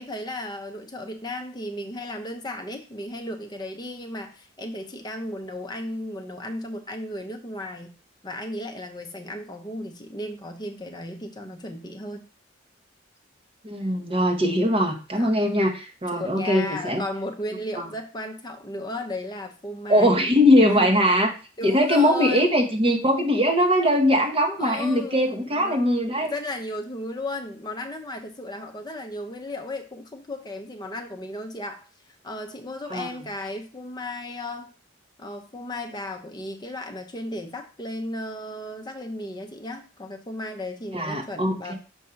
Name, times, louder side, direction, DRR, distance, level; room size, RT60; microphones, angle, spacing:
voice 1, 0.0-7.9 8.2-12.3 15.1-15.3 16.1-20.3 20.5-20.9 21.6-22.5 24.6-31.9 32.2-34.7 35.2-41.7, left 1 dB, 20° left, 4 dB, 0.6 m, -35 dB
voice 2, 13.6-17.0 17.8-17.9 19.9-21.3 21.6-26.3 32.9-33.1 40.9-41.7, equal, 30° right, 3 dB, 1.0 m, -21 dB
6.3 x 2.7 x 5.6 m, 0.36 s
head